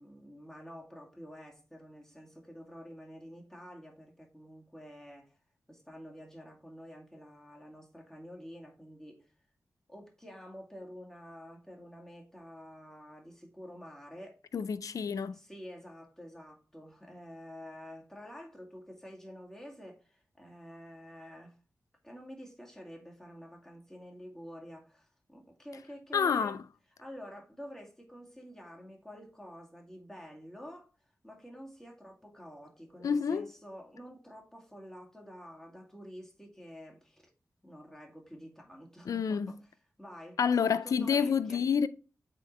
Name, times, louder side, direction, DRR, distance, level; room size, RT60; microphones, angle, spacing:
voice 1, 0.0-5.4 5.7-9.3 9.9-14.4 15.3-21.6 22.0-26.6 27.0-30.9 31.2-37.3 37.6-39.7 40.0-41.6, equal, 5° left, 2.2 m, -49 dB
voice 2, 14.5-15.4 26.1-26.6 33.0-33.5 39.1-39.5 40.4-41.9, left 6 dB, 70° left, 0.4 m, -28 dB
8.1 x 3.8 x 3.2 m
cardioid pair, 55°, 6 cm